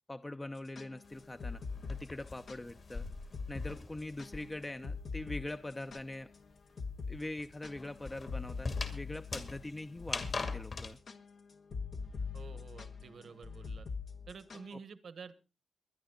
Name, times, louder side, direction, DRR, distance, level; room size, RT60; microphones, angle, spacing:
voice 1, 0.1-1.6 1.9-3.1 3.5-6.3 7.1-11.0 14.7-14.8, left 2 dB, 20° left, 10 dB, 0.7 m, -43 dB
sound 1, 0.6-2.6 2.9-3.0 3.3-3.7 4.0-6.4 6.8-7.2 7.4-14.7, left 5 dB, 65° left, 1.4 m, -42 dB
sound 2, 1.0-4.8 5.1-10.9, left 3 dB, 50° left, 2.4 m, -43 dB
voice 2, 12.3-13.9 14.3-15.4, right 5 dB, 70° right, 14 dB, 1.2 m, -49 dB
23.0 x 10.5 x 3.8 m, 0.31 s
cardioid pair, 95°, 0 cm